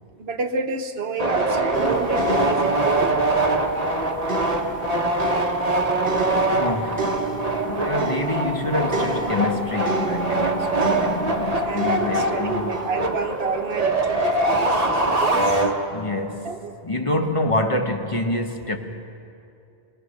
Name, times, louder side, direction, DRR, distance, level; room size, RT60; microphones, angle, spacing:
voice 1, 0.2-3.1 11.6-15.7 16.4-16.7, right 4 dB, 75° right, 1.3 m, -29 dB
sound 1, 1.2-16.2, right 2 dB, 40° right, 1.3 m, -23 dB
sound 2, 1.7-14.8 15.6-15.8, right 3 dB, 55° right, 1.4 m, -33 dB
voice 2, 6.5-7.2 7.6-12.7 15.9-16.6 16.8-18.8, left 2 dB, 30° left, 1.2 m, -26 dB
22.0 x 19.0 x 6.6 m
omnidirectional pair, 1.1 m